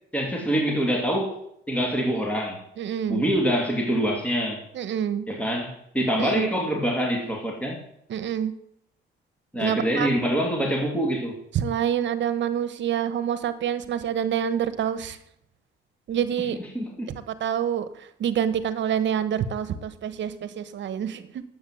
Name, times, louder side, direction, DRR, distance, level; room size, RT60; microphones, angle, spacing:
voice 1, 0.1-1.4 1.7-2.6 3.1-4.6 5.3-7.8 9.5-11.4 16.7-17.1, equal, 5° left, 0 dB, 2.9 m, -25 dB
voice 2, 2.8-3.3 4.7-5.3 6.2-6.5 8.1-8.5 9.6-10.1 11.5-15.2 16.1-16.6 17.1-21.4, right 9 dB, 65° right, 13 dB, 1.2 m, -27 dB
9.9 x 7.9 x 7.7 m, 0.74 s
cardioid pair, 90°, 20 cm